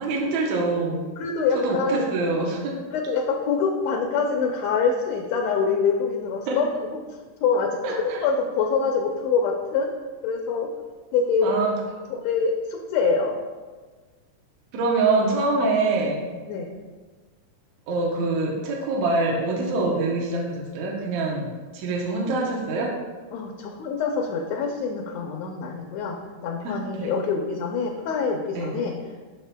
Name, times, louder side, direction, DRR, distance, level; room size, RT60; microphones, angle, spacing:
voice 1, 0.0-1.0 1.6-2.7 6.5-6.6 7.8-8.2 11.4-11.7 14.7-16.3 17.9-23.0 26.6-27.1 28.6-28.8, right 3 dB, 75° right, -2 dB, 2.2 m, -25 dB
voice 2, 1.2-2.0 2.9-6.7 7.1-7.7 8.2-9.9 10.2-10.7 11.1-11.5 12.1-13.3 16.5-16.7 23.3-26.2 26.4-28.9, left 5 dB, 75° left, 2 dB, 1.7 m, -25 dB
7.9 x 6.6 x 2.2 m, 1.4 s
omnidirectional pair, 3.3 m